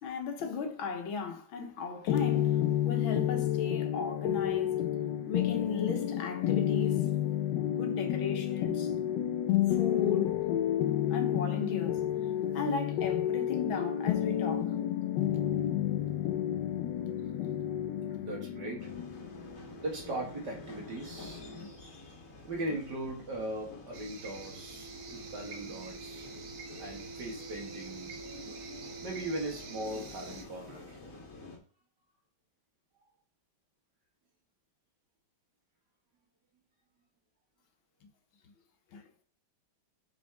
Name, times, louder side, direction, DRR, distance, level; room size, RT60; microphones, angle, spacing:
voice 1, 0.0-2.5 2.8-4.8 5.3-7.0 7.7-8.9 9.8-10.4 11.1-12.1 12.5-14.8 15.4-15.5 17.1-17.2 18.1-18.3 21.6-21.7 38.9-39.0, left 5 dB, 90° left, 1.8 m, -36 dB
sound 1, 2.1-21.6, left 11 dB, 70° left, 1.1 m, -30 dB
voice 2, 18.2-18.9 19.8-21.4 22.4-26.3 26.8-28.1 29.0-31.0, right 1 dB, 60° right, 2.3 m, -39 dB
sound 2, 18.8-31.6, equal, 45° left, 2.2 m, -47 dB
sound 3, 23.9-30.4, right 5 dB, 85° right, 1.8 m, -49 dB
6.3 x 5.2 x 3.5 m
omnidirectional pair, 2.1 m